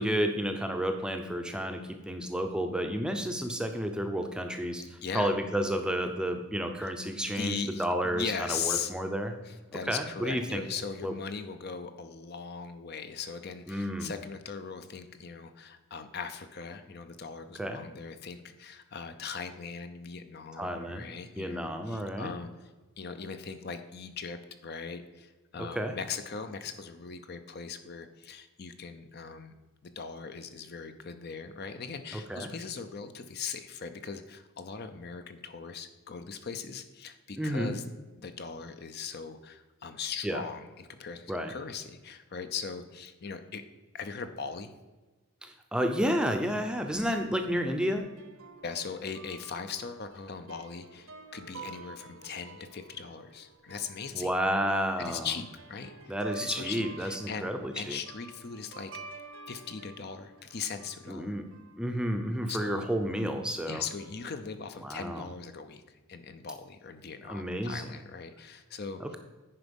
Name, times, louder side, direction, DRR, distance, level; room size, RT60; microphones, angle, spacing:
voice 1, 0.0-9.4 9.9-10.6 11.0-11.1 13.7-14.1 17.6-17.8 20.6-21.1 21.4-22.3 25.6-26.0 32.1-32.5 37.4-37.8 40.2-40.4 41.3-41.5 45.4-48.1 54.1-55.3 56.1-58.0 61.1-61.5 61.8-63.8 64.8-65.3 67.3-67.9 69.0-69.2, equal, 5° right, 5 dB, 0.6 m, -31 dB
voice 2, 5.0-5.3 6.8-6.9 7.3-8.9 9.5-22.7 23.0-29.5 29.8-37.8 38.2-43.6 43.9-44.7 48.6-54.3 55.0-58.9 59.5-61.4 62.5-62.9 63.7-69.2, left 5 dB, 45° left, 9 dB, 0.6 m, -39 dB
sound 1, 47.6-61.9 62.8-64.3, right 3 dB, 70° right, 1.0 m, -49 dB
9.9 x 5.1 x 5.3 m, 1.2 s
head